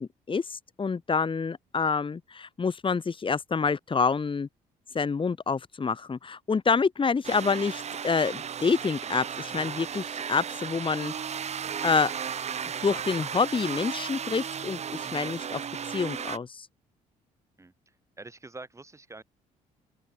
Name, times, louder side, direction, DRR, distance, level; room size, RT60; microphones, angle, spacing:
voice 1, 0.0-4.5 4.9-11.1 11.8-12.1 12.8-15.6 15.9-16.7, left 5 dB, 35° left, 3.0 m, -27 dB
sound 1, 7.2-16.4, right 7 dB, 45° right, 1.3 m, -35 dB
voice 2, 18.2-19.2, right 3 dB, 20° right, 3.5 m, -45 dB
open air
supercardioid pair, 75°, 16 cm